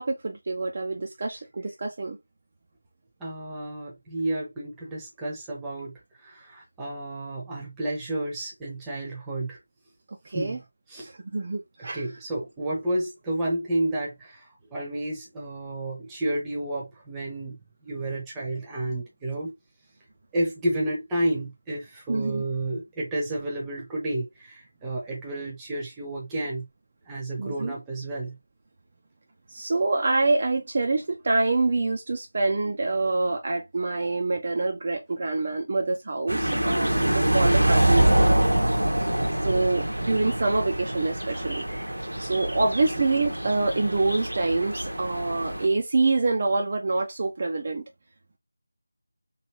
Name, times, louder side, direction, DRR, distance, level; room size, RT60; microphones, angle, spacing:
voice 1, 0.0-2.2 10.3-10.6 11.2-12.1 22.1-22.4 27.4-27.7 29.5-38.6 39.4-41.6 42.2-47.8, right 3 dB, 35° right, 0.4 m, -26 dB
voice 2, 3.2-9.6 10.3-10.6 10.9-11.1 11.8-19.5 20.3-26.7 27.1-28.4 41.3-41.5, right 1 dB, 10° right, 0.8 m, -31 dB
sound 1, 36.3-45.7, right 1 dB, 85° right, 1.0 m, -25 dB
3.1 x 2.7 x 2.8 m
figure-of-eight pair, 165°, 0 cm